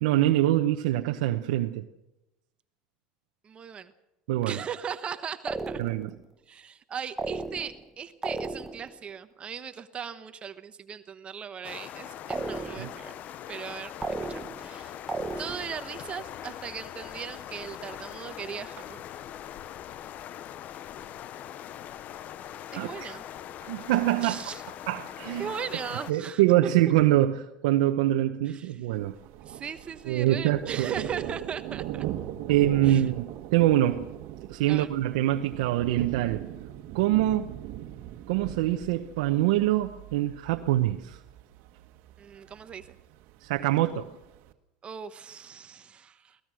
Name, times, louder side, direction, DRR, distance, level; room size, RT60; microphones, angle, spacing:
voice 1, 0.0-1.9 4.3-4.6 5.8-6.1 12.8-12.9 22.8-23.1 23.6-24.4 24.9-25.5 26.1-29.1 30.1-30.9 32.5-34.1 34.5-36.4 36.9-37.5 38.3-41.2 43.4-44.1, right 14 dB, 85° right, 1.0 m, -24 dB
voice 2, 3.4-3.9 4.4-5.8 6.5-13.2 13.5-13.9 14.3-15.0 15.4-19.0 22.7-23.2 24.2-24.6 25.4-26.4 28.5-28.8 29.4-32.0 32.8-33.0 34.7-34.9 42.2-42.9 44.8-46.4, right 7 dB, 30° right, 1.1 m, -38 dB
sound 1, 5.5-6.2 7.2-7.9 8.2-9.0 12.3-13.0 14.0-14.7 15.1-15.8, right 2 dB, 10° right, 1.2 m, -34 dB
sound 2, 11.6-26.1, left 11 dB, 45° left, 0.7 m, -42 dB
Thunder, 28.9-44.5, right 13 dB, 65° right, 1.6 m, -40 dB
23.0 x 18.5 x 6.3 m
supercardioid pair, 120°, 4 cm